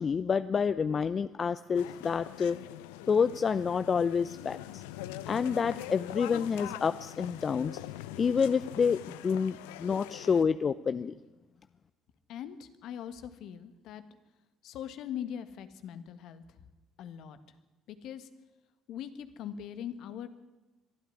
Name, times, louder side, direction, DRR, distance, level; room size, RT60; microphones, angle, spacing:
voice 1, 0.0-2.6 3.1-4.8 5.3-7.7 8.2-11.1, left 6 dB, 40° left, 15 dB, 0.6 m, -28 dB
sound 1, 1.7-10.4, left 15 dB, 80° left, 0.7 m, -43 dB
voice 2, 12.3-14.0 14.6-16.6 17.0-17.4 17.9-18.3 18.9-20.3, left 9 dB, 65° left, 11 dB, 1.6 m, -41 dB
23.0 x 12.5 x 9.8 m, 1.1 s
hypercardioid pair, 60°, 0 cm